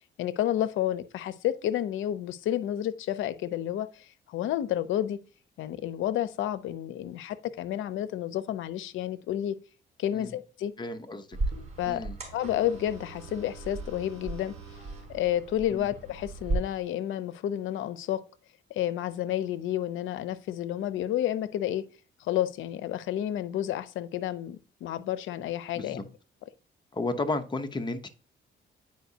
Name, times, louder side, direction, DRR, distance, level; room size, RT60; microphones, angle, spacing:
voice 1, 0.2-5.2 5.6-9.6 10.0-10.7 11.8-14.5 15.1-18.2 18.7-21.9 22.2-26.0, left 12 dB, 80° left, 0.6 m, -30 dB
voice 2, 10.8-11.4 11.8-12.2 15.7-15.9 25.7-26.0 26.9-28.1, left 2 dB, 20° left, 0.8 m, -33 dB
sound 1, 11.3-16.6, right 2 dB, 35° right, 3.7 m, -37 dB
9.1 x 4.7 x 2.8 m
cardioid pair, 90°, 20 cm